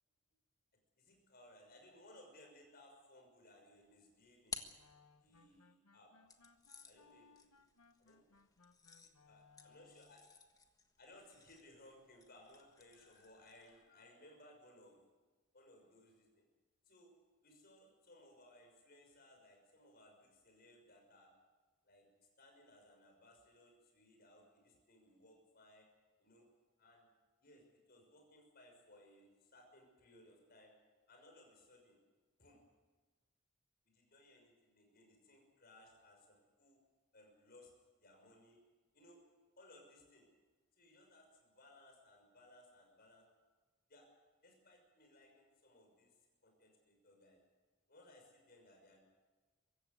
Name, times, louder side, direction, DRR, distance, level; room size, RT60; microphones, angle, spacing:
voice 1, 1.0-4.6 5.2-6.1 6.8-7.4 8.1-8.2 8.9-10.2 11.0-15.0 15.5-16.4 16.8-17.1 17.4-21.3 21.8-22.1 22.4-25.9 26.2-26.5 26.8-27.1 27.4-30.7 31.1-32.0 32.4-32.6 33.8-36.8 37.1-37.7 38.0-38.6 38.9-39.2 39.6-40.3 40.8-43.3 43.9-44.1 44.4-46.2 46.4-47.4 47.9-49.0, left 1 dB, 45° left, 2 dB, 6.2 m, -63 dB
sound 1, 3.8-5.6 6.3-13.9, left 5 dB, 15° left, 1.4 m, -55 dB
sound 2, 4.8-10.3, left 4 dB, 85° left, 1.2 m, -67 dB
24.0 x 15.0 x 9.6 m, 1.3 s
head